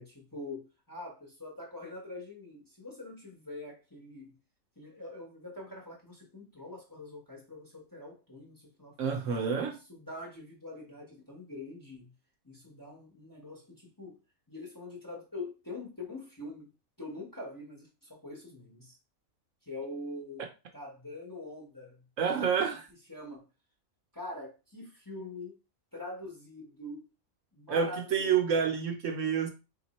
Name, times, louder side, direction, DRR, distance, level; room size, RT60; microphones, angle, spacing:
voice 1, 0.0-4.3 4.8-12.1 12.4-14.2 14.5-16.7 17.0-19.0 19.7-20.4 20.7-22.0 23.1-23.4 24.1-25.5 25.9-27.1 27.5-28.4, left 2 dB, 15° left, 1.0 m, -44 dB
voice 2, 9.0-9.7 22.2-22.9 27.7-29.5, right 7 dB, 70° right, 1.0 m, -28 dB
3.6 x 2.9 x 4.0 m
omnidirectional pair, 1.4 m